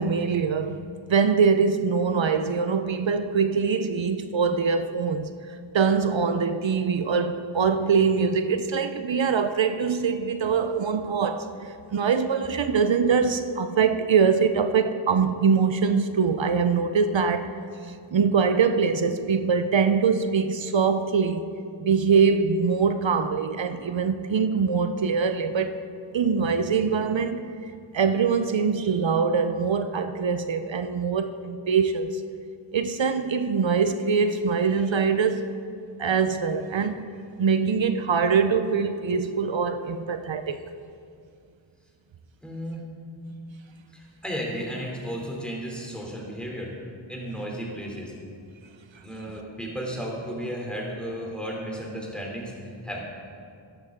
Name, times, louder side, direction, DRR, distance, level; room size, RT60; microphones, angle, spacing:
voice 1, 0.0-5.3 5.7-17.6 18.1-21.5 21.8-25.8 26.1-32.2 32.7-35.5 36.0-37.1 37.4-40.6, right 5 dB, 65° right, 0.7 m, -23 dB
voice 2, 42.4-42.8 43.9-46.7 47.1-48.1 49.0-52.5 52.8-53.0, equal, ahead, 3.1 m, -34 dB
13.0 x 11.5 x 3.8 m
wide cardioid pair, 45°, 49 cm